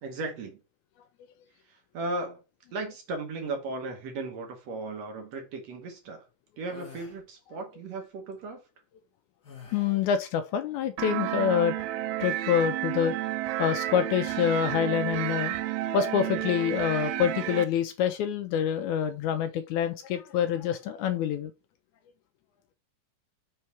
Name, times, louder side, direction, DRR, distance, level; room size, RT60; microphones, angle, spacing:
voice 1, 0.0-0.6 1.6-2.4 2.7-6.3 6.6-8.6, right 2 dB, 65° right, 1.9 m, -36 dB
sound 1, 6.7-7.2 9.4-10.1, left 6 dB, 40° left, 1.8 m, -47 dB
voice 2, 9.7-11.8 12.2-13.1 13.6-15.5 15.9-21.5, left 9 dB, 80° left, 1.8 m, -26 dB
sound 2, 11.0-17.6, right 14 dB, 80° right, 1.7 m, -31 dB
5.6 x 3.8 x 4.6 m
omnidirectional pair, 3.7 m